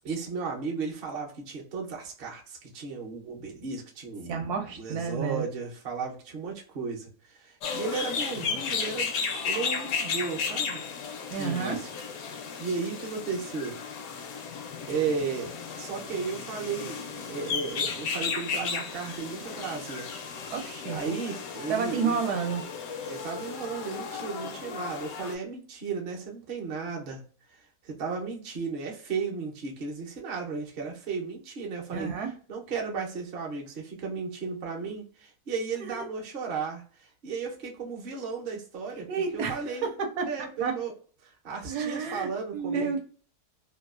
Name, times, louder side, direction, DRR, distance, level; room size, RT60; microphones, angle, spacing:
voice 1, 0.0-10.8 11.4-11.9 12.2-13.8 14.9-20.4 20.9-22.2 23.1-27.2 27.5-32.1 32.5-39.9 40.3-40.9 41.2-43.0, right 5 dB, 50° right, 0 dB, 0.7 m, -35 dB
voice 2, 4.3-5.4 11.3-11.8 20.5-21.2 21.7-22.6 31.9-32.3 35.8-36.0 39.1-40.3 40.6-40.7 41.7-43.0, right 5 dB, 75° right, 4 dB, 1.1 m, -30 dB
sound 1, 7.6-25.4, left 5 dB, 70° left, 0.9 m, -34 dB
2.9 x 2.3 x 2.3 m, 0.41 s
omnidirectional pair, 1.8 m